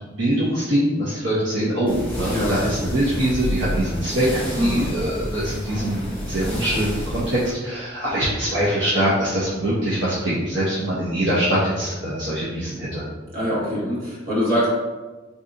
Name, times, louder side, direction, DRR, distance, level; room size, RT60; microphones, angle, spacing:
voice 1, 0.2-13.0, right 1 dB, 65° right, -8 dB, 0.7 m, -23 dB
sound 1, 1.9-7.5, equal, 10° left, 1.1 m, -29 dB
voice 2, 4.5-4.9 13.3-14.7, equal, 50° right, -8 dB, 1.3 m, -23 dB
3.7 x 2.7 x 2.4 m, 1.2 s
head